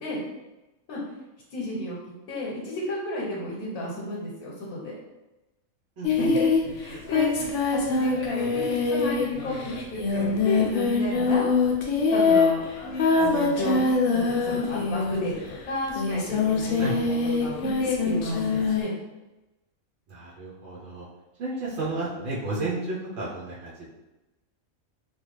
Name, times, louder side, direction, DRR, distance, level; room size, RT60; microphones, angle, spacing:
voice 1, 1.5-2.0 2.3-4.9 6.1-6.5 6.8-11.5 12.1-12.6 13.1-13.8 14.1-18.9, left 1 dB, 85° left, -4 dB, 1.2 m, -32 dB
Singing, 6.0-15.4 15.9-18.8, left 4 dB, 65° left, 0.9 m, -24 dB
voice 2, 6.0-6.3 16.8-16.9 20.1-21.1 21.4-23.9, right 2 dB, 60° right, -6 dB, 0.9 m, -32 dB
3.1 x 2.4 x 3.2 m, 1.0 s
omnidirectional pair, 1.5 m